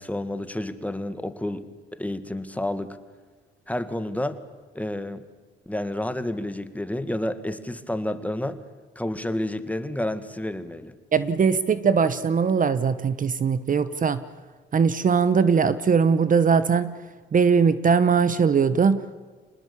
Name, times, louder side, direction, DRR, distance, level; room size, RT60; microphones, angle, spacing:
voice 1, 0.0-1.6 1.9-3.0 3.7-4.4 4.8-5.2 5.7-8.6 9.0-11.0, left 1 dB, 5° left, 11 dB, 1.8 m, -30 dB
voice 2, 11.1-14.2 14.7-17.0 17.3-19.1, right 6 dB, 40° right, 14 dB, 1.1 m, -20 dB
26.0 x 19.5 x 8.6 m, 1.5 s
cardioid pair, 90°, 20 cm